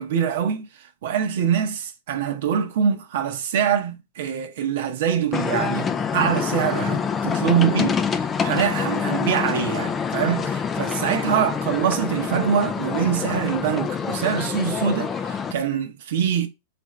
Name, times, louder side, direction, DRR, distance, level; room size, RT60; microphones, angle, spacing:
voice 1, 0.0-16.5, right 8 dB, 70° right, 0.7 m, -24 dB
sound 1, 5.3-15.5, left 6 dB, 20° left, 0.3 m, -26 dB
3.5 x 2.5 x 4.2 m
supercardioid pair, 145°, 0 cm